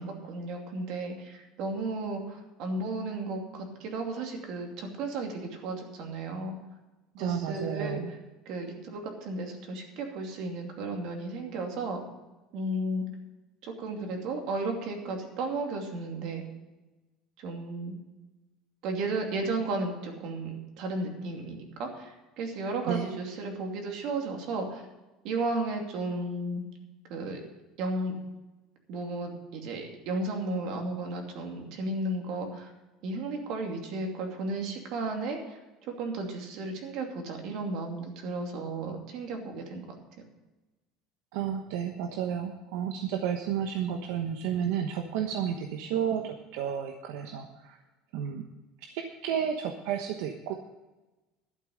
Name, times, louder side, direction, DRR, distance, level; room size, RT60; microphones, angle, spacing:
voice 1, 0.0-6.6 7.1-8.0 8.5-12.0 12.5-13.1 13.6-16.4 17.4-17.9 18.8-24.8 25.2-26.6 27.1-27.4 27.8-28.1 28.9-32.7 33.0-40.0, right 2 dB, 55° right, 3 dB, 2.6 m, -34 dB
voice 2, 7.2-8.1 22.9-23.1 41.3-47.8 48.1-48.4 48.8-50.5, right 8 dB, 75° right, 4 dB, 1.1 m, -32 dB
12.0 x 8.7 x 6.5 m, 1.1 s
cardioid pair, 160°, 0 cm